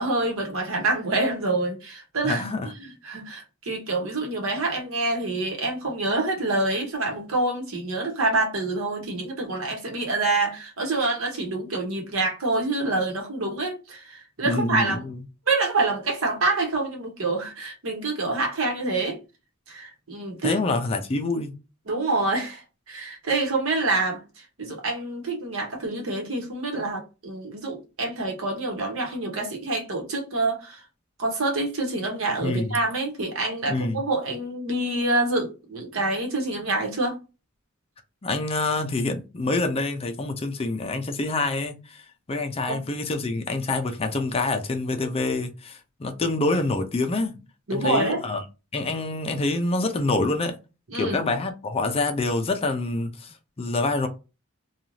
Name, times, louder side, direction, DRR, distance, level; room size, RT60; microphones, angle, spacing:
voice 1, 0.0-15.0 15.5-19.2 19.7-20.6 21.9-24.2 24.6-30.8 31.2-37.2 42.7-42.8 47.7-48.2 50.9-51.2, right 2 dB, 75° right, 1.0 m, -27 dB
voice 2, 2.2-2.7 14.4-15.2 20.4-21.5 32.4-32.8 33.7-34.0 38.2-47.4 47.7-48.4 48.7-50.5 50.9-54.1, left 2 dB, 30° left, 0.4 m, -26 dB
2.6 x 2.3 x 3.0 m
head